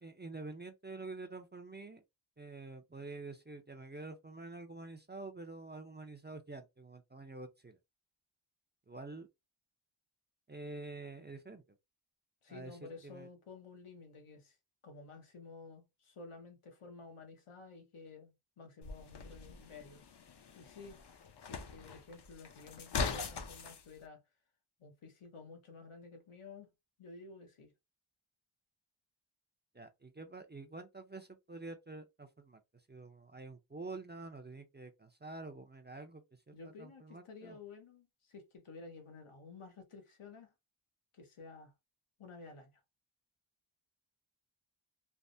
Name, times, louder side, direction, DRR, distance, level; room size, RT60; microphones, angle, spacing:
voice 1, 0.0-2.0 2.4-7.8 8.9-9.3 10.5-11.6 12.5-13.3 29.7-32.6 32.9-37.6, right 3 dB, 20° right, 0.4 m, -48 dB
voice 2, 12.4-14.6 14.8-20.0 20.5-21.0 21.4-24.2 24.8-26.7 27.0-27.7 36.5-40.5 41.1-41.7 42.2-42.7, left 4 dB, 80° left, 1.0 m, -52 dB
sound 1, 18.8-23.8, left 4 dB, 55° left, 0.6 m, -41 dB
3.3 x 2.1 x 2.6 m
wide cardioid pair, 70°, 49 cm